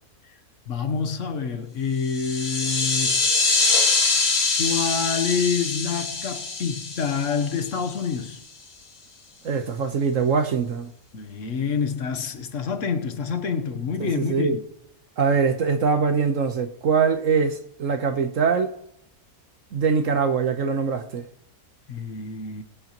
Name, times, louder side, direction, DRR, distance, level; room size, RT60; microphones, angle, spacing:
voice 1, 0.7-3.3 4.6-8.4 11.1-14.6 21.9-22.6, left 6 dB, 60° left, 1.3 m, -27 dB
sound 1, 2.0-8.1, left 4 dB, 85° left, 2.4 m, -24 dB
voice 2, 9.4-10.9 14.0-14.5 15.2-18.7 19.7-21.3, right 5 dB, 65° right, 1.3 m, -23 dB
22.0 x 8.3 x 3.0 m
omnidirectional pair, 1.5 m